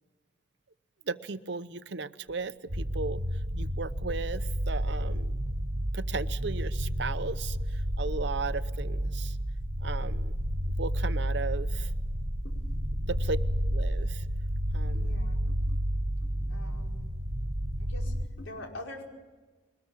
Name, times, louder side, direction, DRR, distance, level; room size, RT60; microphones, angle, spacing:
voice 1, 1.1-3.2 3.6-5.4 5.9-9.4 9.8-10.4 10.8-11.9 13.0-13.4 13.7-14.2 14.7-15.1, right 4 dB, 65° right, 13 dB, 0.8 m, -36 dB
sound 1, 2.7-18.2, equal, 35° right, 1.7 m, -31 dB
voice 2, 14.8-15.6 16.2-17.1 17.8-19.0, left 1 dB, 85° left, 0 dB, 5.2 m, -45 dB
23.0 x 20.0 x 7.3 m, 1.3 s
head